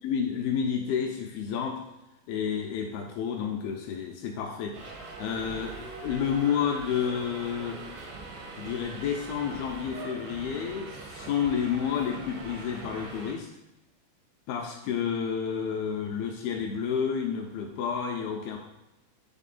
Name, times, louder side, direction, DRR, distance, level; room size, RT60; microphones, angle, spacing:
voice 1, 0.0-1.8 2.3-7.8 8.6-13.5 14.5-18.6, left 7 dB, 80° left, 1 dB, 2.3 m, -30 dB
Subway metro underground, 4.7-13.3, right 3 dB, 90° right, 3.7 m, -42 dB
10.0 x 3.6 x 4.1 m, 0.98 s
omnidirectional pair, 5.0 m